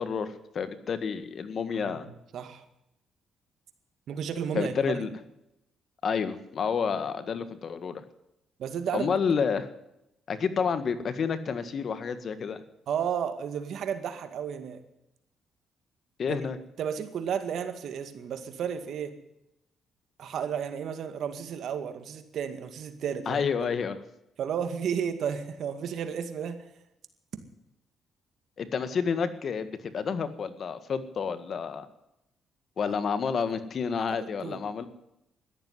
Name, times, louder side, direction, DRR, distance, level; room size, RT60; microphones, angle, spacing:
voice 1, 0.0-2.1 4.5-5.1 6.0-8.0 8.9-9.7 10.3-12.6 16.2-16.6 23.2-24.0 28.6-31.9 32.8-34.9, left 6 dB, 55° left, 11 dB, 1.7 m, -29 dB
voice 2, 1.7-2.0 2.3-2.6 4.1-5.0 8.6-9.1 12.9-14.8 16.3-16.4 16.8-19.2 20.2-23.4 24.4-26.7 34.4-34.6, right 8 dB, 70° right, 8 dB, 2.1 m, -32 dB
14.0 x 10.5 x 9.6 m, 0.84 s
cardioid pair, 90°, 0 cm